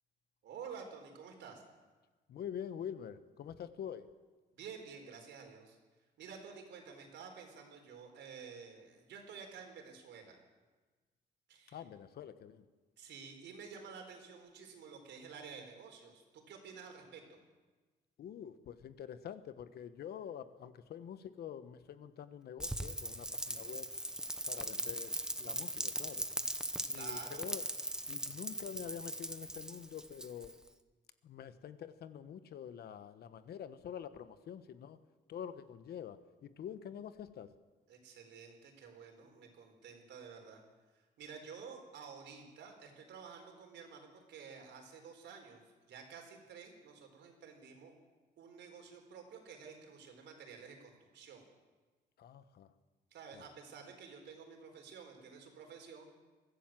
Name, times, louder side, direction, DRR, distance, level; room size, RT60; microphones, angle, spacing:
voice 1, 0.4-1.6 4.5-5.8 6.2-10.4 11.5-11.8 13.0-17.4 26.9-27.5 37.9-40.6 41.2-47.9 48.4-51.5 53.1-56.1, right 6 dB, 80° right, 4 dB, 4.4 m, -51 dB
voice 2, 2.3-4.0 11.7-12.6 18.2-23.9 24.4-26.2 26.9-27.6 28.1-30.5 31.2-35.0 35.3-37.5 52.2-52.7 53.3-53.5, left 9 dB, 60° left, 12 dB, 1.2 m, -46 dB
Rain, 22.6-30.7, right 1 dB, 5° right, 0.8 m, -40 dB
23.0 x 15.5 x 7.6 m, 1.3 s
cardioid pair, 165°, 18 cm